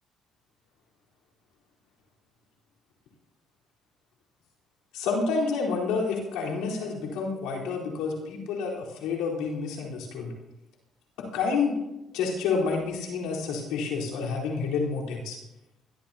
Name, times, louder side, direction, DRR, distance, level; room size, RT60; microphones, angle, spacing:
voice 1, 4.9-10.3 11.2-11.8 12.1-15.4, left 4 dB, 90° left, -4 dB, 4.3 m, -29 dB
21.5 x 13.0 x 2.9 m, 0.92 s
cardioid pair, 85°, 0 cm